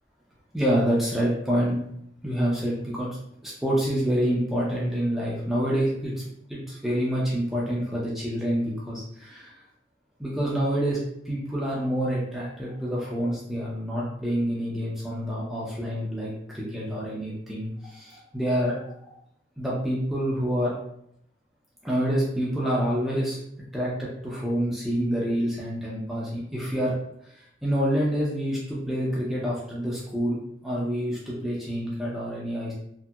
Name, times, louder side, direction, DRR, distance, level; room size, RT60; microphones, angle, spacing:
voice 1, 0.5-1.8 2.2-3.1 3.4-6.2 6.5-9.6 10.2-11.0 11.3-18.9 19.6-20.7 21.8-23.4 23.7-26.9 27.3-30.4 30.6-32.7, equal, ahead, -6 dB, 0.4 m, -27 dB
2.8 x 2.8 x 2.3 m, 0.73 s
head